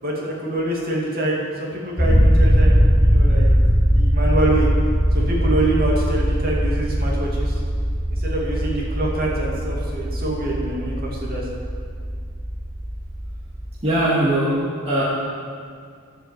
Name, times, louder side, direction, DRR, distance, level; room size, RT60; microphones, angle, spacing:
voice 1, 0.0-3.5 3.8-4.7 5.1-7.6 8.1-11.4, right 1 dB, 45° right, -3 dB, 2.4 m, -25 dB
sound 1, 2.0-13.9, equal, 35° left, 3.7 m, -20 dB
voice 2, 13.8-14.6 14.9-15.0, right 1 dB, 30° right, -7 dB, 2.0 m, -19 dB
11.0 x 8.1 x 7.5 m, 2.1 s
head